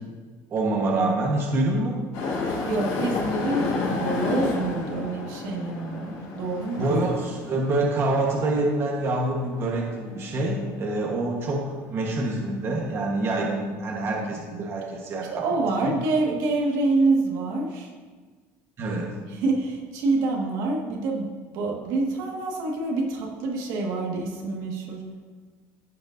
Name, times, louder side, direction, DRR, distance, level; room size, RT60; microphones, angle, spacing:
voice 1, 0.5-2.0 6.8-15.4 15.8-15.9 18.8-19.2, right 2 dB, 35° right, -1 dB, 1.2 m, -26 dB
sound 1, 2.1-11.7 12.3-12.4 13.2-13.3, left 3 dB, 65° left, 1.8 m, -32 dB
voice 2, 2.6-7.2 14.5-14.6 15.3-17.9 19.3-21.3 21.5-25.0, right 3 dB, 70° right, -1 dB, 1.7 m, -26 dB
14.5 x 5.2 x 2.6 m, 1.4 s
cardioid pair, 130°, 7 cm